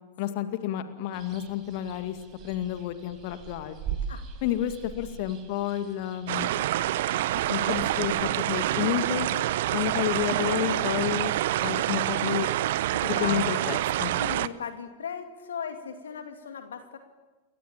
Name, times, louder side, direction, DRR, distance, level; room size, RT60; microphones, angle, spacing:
voice 1, 0.2-2.2 2.4-3.8 4.4-6.6 7.5-9.3 9.7-11.3 11.6-12.5 13.0-14.1, left 11 dB, 50° left, 9 dB, 2.2 m, -30 dB
sound 1, 1.1-8.0, right 8 dB, 35° right, 5.2 m, -41 dB
voice 2, 4.1-4.5 7.5-7.8 12.9-13.6 14.2-17.0, left 7 dB, 65° left, 6 dB, 2.5 m, -38 dB
sound 2, 6.3-14.5, right 14 dB, 55° right, 0.8 m, -27 dB
29.0 x 23.0 x 8.9 m, 1.2 s
figure-of-eight pair, 90°, 0 cm